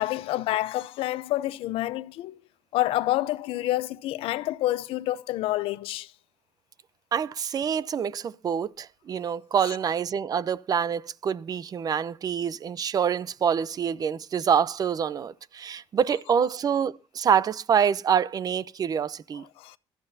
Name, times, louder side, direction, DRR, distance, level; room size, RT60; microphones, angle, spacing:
voice 1, 0.0-2.4 2.7-6.1 19.6-19.8, left 15 dB, 90° left, 0.7 m, -28 dB
voice 2, 7.1-19.4, right 7 dB, 45° right, 0.7 m, -26 dB
22.0 x 13.0 x 2.8 m
cardioid pair, 120°, 9 cm